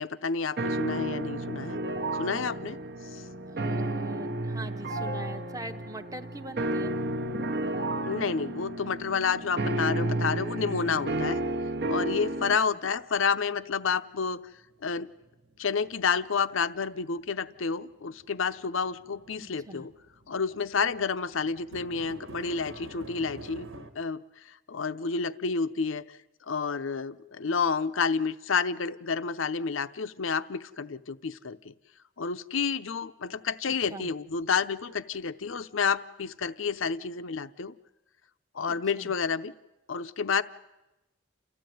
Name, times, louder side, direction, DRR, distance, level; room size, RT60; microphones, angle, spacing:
voice 1, 0.0-1.8 2.1-2.8 3.1-3.2 8.1-11.4 11.9-14.4 14.8-15.1 15.6-19.9 20.3-23.7 24.0-26.2 26.5-31.7 32.2-37.7 38.5-39.5 39.9-40.4, left 5 dB, 80° left, 12 dB, 0.7 m, -30 dB
sound 1, 0.6-12.6, right 1 dB, 55° right, 0.9 m, -32 dB
voice 2, 3.5-6.9 12.4-12.5 19.4-19.9 33.6-34.1 38.6-39.1, right 1 dB, 15° right, 5 dB, 0.8 m, -42 dB
sound 2, 12.5-14.2 14.5-23.9, right 2 dB, 85° right, 1.5 m, -50 dB
29.5 x 14.5 x 9.3 m, 1.0 s
head